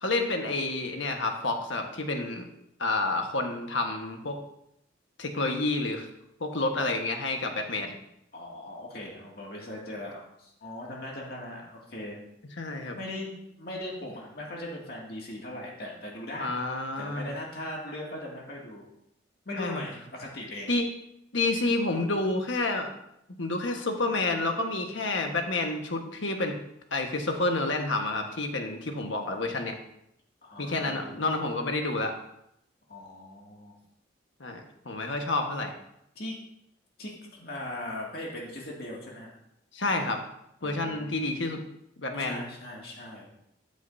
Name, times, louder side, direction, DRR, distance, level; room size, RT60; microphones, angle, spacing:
voice 1, 0.0-2.5 2.8-4.4 5.2-6.1 6.4-7.9 12.6-13.0 16.4-17.3 19.6-19.8 20.7-20.9 21.3-22.9 23.4-26.5 26.9-29.8 30.6-32.2 34.4-35.7 39.7-40.2 40.6-41.6 42.0-42.4, left 2 dB, 85° left, 3 dB, 1.5 m, -29 dB
voice 2, 8.3-12.2 12.9-16.6 17.0-18.9 19.5-20.7 30.4-31.3 32.9-33.8 36.2-36.3 37.0-39.3 40.6-41.1 42.2-43.3, left 1 dB, 55° left, -3 dB, 2.4 m, -39 dB
13.5 x 9.1 x 2.7 m, 0.78 s
head